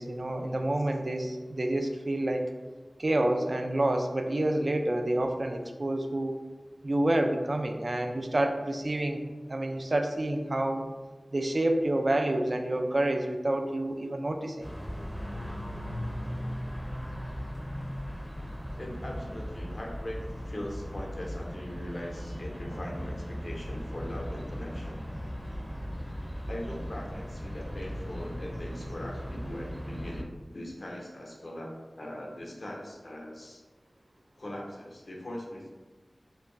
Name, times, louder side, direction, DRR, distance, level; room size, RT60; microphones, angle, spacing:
voice 1, 0.0-2.5 3.0-6.4 6.8-9.2 9.5-10.8 11.3-14.6, right 1 dB, 55° right, 4 dB, 0.3 m, -28 dB
sound 1, 14.6-30.2, equal, 5° right, 0.6 m, -38 dB
voice 2, 18.8-25.0 26.5-33.6 34.4-35.7, left 1 dB, 60° left, -1 dB, 0.7 m, -40 dB
3.0 x 2.2 x 3.7 m, 1.3 s
wide cardioid pair, 55°, 0 cm